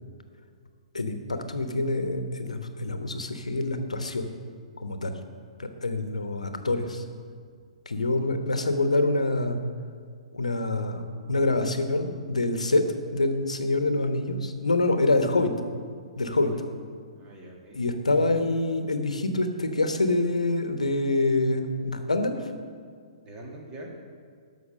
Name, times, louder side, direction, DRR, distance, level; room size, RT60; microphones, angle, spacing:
voice 1, 0.9-4.3 4.8-5.2 5.6-7.0 7.9-9.6 10.3-12.8 13.1-15.5 16.2-16.5 17.7-22.3, left 2 dB, 75° left, 7 dB, 1.1 m, -26 dB
voice 2, 15.0-15.4 16.2-16.6 17.2-17.8 23.2-23.9, right 1 dB, 25° right, 0 dB, 2.0 m, -44 dB
13.5 x 5.9 x 6.5 m, 2.1 s
figure-of-eight pair, 120°, 4 cm